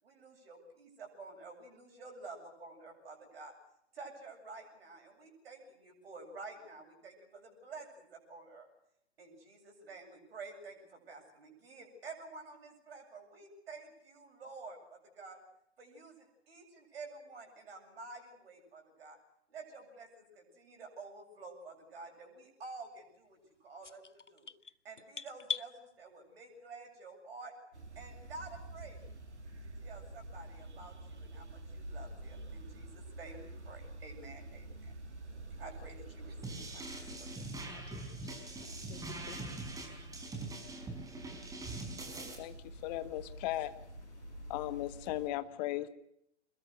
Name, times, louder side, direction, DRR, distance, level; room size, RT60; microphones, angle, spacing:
voice 1, 0.0-3.5 3.9-8.7 9.2-15.4 15.8-19.2 19.5-24.5 24.8-27.5 27.9-29.0 29.8-34.9 35.6-37.3, right 3 dB, 55° right, 7.9 m, -50 dB
sound 1, 23.8-25.7, left 5 dB, 90° left, 0.8 m, -40 dB
sound 2, 27.7-45.3, right 1 dB, 75° right, 2.7 m, -48 dB
sound 3, 36.4-42.3, right 2 dB, 10° right, 4.7 m, -43 dB
voice 2, 37.7-39.7, left 6 dB, 15° left, 3.2 m, -54 dB
voice 3, 42.4-43.7 44.5-45.9, left 15 dB, 35° left, 1.7 m, -37 dB
26.0 x 22.0 x 6.5 m
figure-of-eight pair, 110°, 35 cm